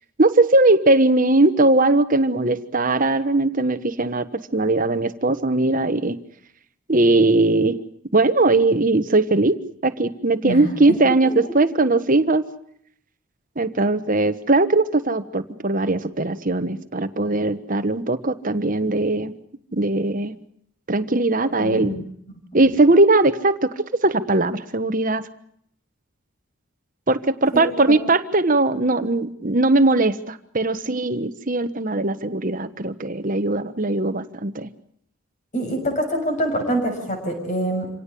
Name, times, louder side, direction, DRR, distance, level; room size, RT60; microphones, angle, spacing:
voice 1, 0.2-6.2 6.9-7.8 8.1-12.4 13.6-19.4 19.7-20.4 20.9-22.0 22.5-25.3 27.1-34.7, right 2 dB, 40° right, 11 dB, 1.2 m, -19 dB
voice 2, 10.4-11.0 21.6-22.0 35.5-37.9, right 1 dB, 35° left, 4 dB, 6.8 m, -25 dB
26.5 x 17.5 x 8.4 m, 0.69 s
head